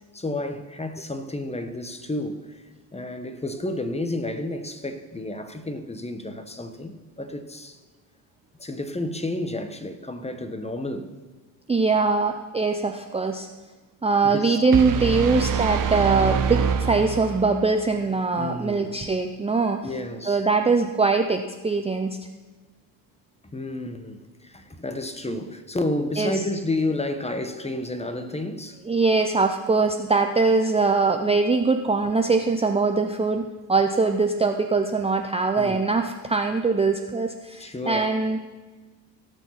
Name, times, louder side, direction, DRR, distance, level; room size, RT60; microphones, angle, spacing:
voice 1, 0.1-2.6 2.9-7.8 8.6-11.1 14.2-14.6 15.3-15.5 18.4-19.0 19.8-20.4 23.5-28.8 35.6-35.9 37.6-38.2, left 2 dB, 15° left, 1.1 m, -31 dB
voice 2, 11.7-13.5 14.0-19.9 20.3-22.2 26.2-26.3 28.9-38.5, right 4 dB, 10° right, 0.6 m, -22 dB
sound 1, 14.7-17.7, right 6 dB, 40° right, 1.1 m, -25 dB
16.5 x 6.1 x 5.8 m
supercardioid pair, 85°, 49 cm